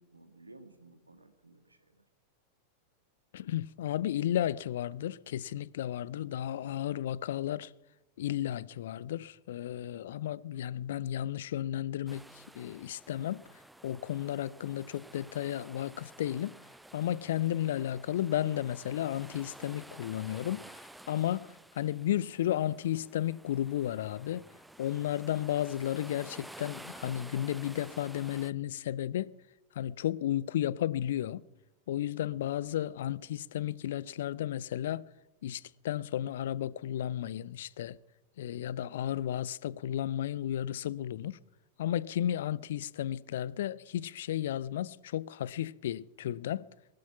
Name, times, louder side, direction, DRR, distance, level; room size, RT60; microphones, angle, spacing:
voice 1, 0.0-2.0, right 2 dB, 85° right, 1.8 m, -56 dB
voice 2, 3.3-7.7 8.2-13.4 13.8-16.5 16.9-20.8 21.1-24.4 24.8-29.3 29.8-31.4 31.9-35.1 35.4-38.0 38.4-41.4 41.8-46.7, left 11 dB, 60° left, 0.5 m, -33 dB
sound 1, 12.1-28.5, right 1 dB, 5° right, 0.6 m, -52 dB
19.5 x 11.5 x 5.7 m
figure-of-eight pair, 90°, 0 cm